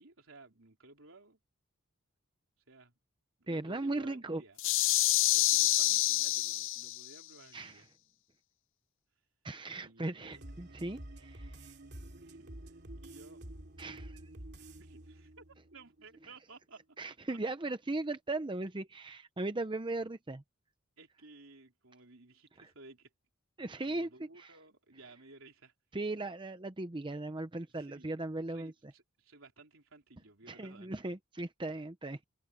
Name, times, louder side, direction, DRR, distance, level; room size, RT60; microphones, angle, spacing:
voice 1, 0.0-1.4 2.7-3.0 3.4-4.6 5.3-7.9 9.8-10.4 12.2-13.4 14.6-17.4 21.0-23.1 23.6-25.7 27.7-28.1 28.5-30.9, right 3 dB, 70° right, 3.9 m, -57 dB
voice 2, 3.5-4.4 7.5-7.8 9.4-11.7 13.8-14.2 17.0-20.4 22.6-22.7 23.6-24.1 24.4-24.5 25.9-28.7 30.5-32.2, right 2 dB, 20° right, 0.7 m, -38 dB
sound 1, 4.6-7.1, left 16 dB, 60° left, 0.5 m, -27 dB
sound 2, 10.3-16.4 16.7-16.8, right 1 dB, 50° right, 2.9 m, -49 dB
open air
head